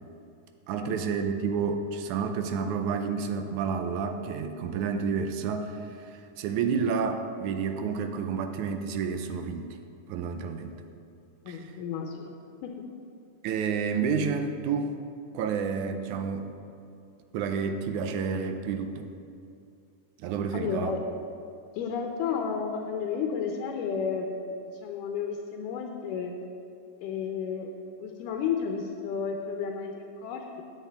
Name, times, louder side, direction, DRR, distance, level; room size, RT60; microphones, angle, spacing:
voice 1, 0.7-9.8 10.1-10.8 11.5-11.7 13.4-14.9 15.3-16.5 17.3-19.1 20.2-20.9, right 6 dB, 80° right, 7 dB, 2.0 m, -30 dB
voice 2, 11.5-12.3 12.6-12.8 20.5-21.0 21.7-26.3 27.0-27.7 28.0-30.6, left 6 dB, 85° left, 2 dB, 2.4 m, -32 dB
15.0 x 9.4 x 3.4 m, 2.5 s
omnidirectional pair, 3.6 m